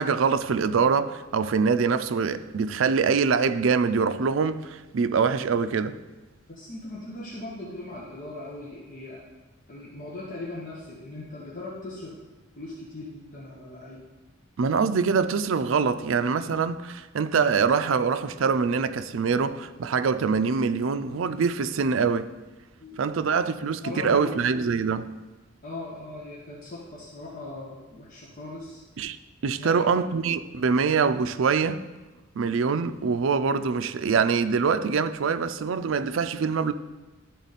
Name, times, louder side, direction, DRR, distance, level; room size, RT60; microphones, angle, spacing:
voice 1, 0.0-6.0 14.6-22.3 23.0-25.1 29.0-29.2 29.4-31.9 32.4-36.7, right 5 dB, 75° right, 0.4 m, -24 dB
voice 2, 6.5-9.2 9.7-12.2 12.6-14.0 22.8-23.1 23.8-24.4 25.6-28.8 29.6-29.9, left 2 dB, 40° left, 1.2 m, -39 dB
12.0 x 4.0 x 4.1 m
head